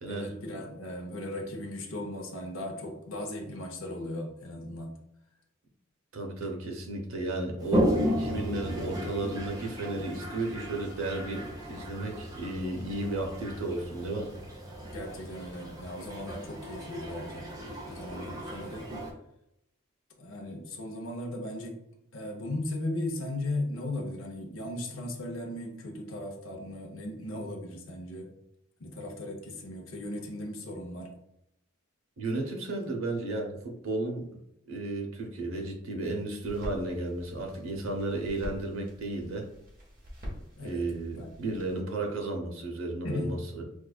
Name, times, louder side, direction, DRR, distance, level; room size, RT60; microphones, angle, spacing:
voice 1, 0.1-4.9 14.8-17.5 17.9-18.9 20.2-21.8 22.1-28.3 28.8-31.1 40.6-40.9 41.2-41.6 43.0-43.4, left 1 dB, 70° left, 2 dB, 0.7 m, -37 dB
voice 2, 6.1-14.3 32.2-34.3 34.7-39.5 40.6-43.6, right 2 dB, 75° right, 1 dB, 0.7 m, -34 dB
Toilet flush, 7.6-19.1, equal, 20° right, 0.6 m, -34 dB
sound 1, 36.4-41.8, equal, 40° right, 1.2 m, -45 dB
4.5 x 2.3 x 2.3 m, 0.79 s
head